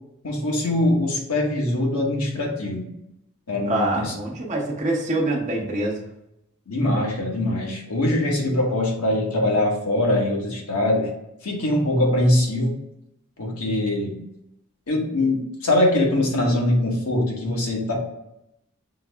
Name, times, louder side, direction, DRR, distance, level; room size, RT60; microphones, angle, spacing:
voice 1, 0.2-2.9 3.5-4.1 6.7-11.1 11.4-12.7 13.4-14.1 14.9-17.9, left 1 dB, 85° left, -1 dB, 1.1 m, -22 dB
voice 2, 3.7-6.0, right 2 dB, 35° right, -3 dB, 1.0 m, -25 dB
5.9 x 2.0 x 3.4 m, 0.83 s
head